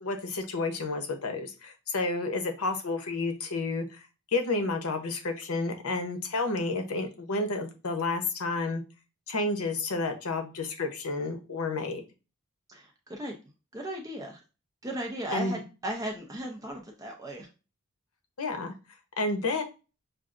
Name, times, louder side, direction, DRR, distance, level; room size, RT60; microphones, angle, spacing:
voice 1, 0.0-4.0 4.3-8.8 9.3-12.0 15.3-15.6 18.4-18.7 19.2-19.6, left 3 dB, 90° left, 5 dB, 0.8 m, -30 dB
voice 2, 12.7-13.3 13.7-14.4 14.8-17.5, right 1 dB, 15° right, 1 dB, 0.6 m, -36 dB
6.1 x 2.4 x 2.5 m, 0.31 s
head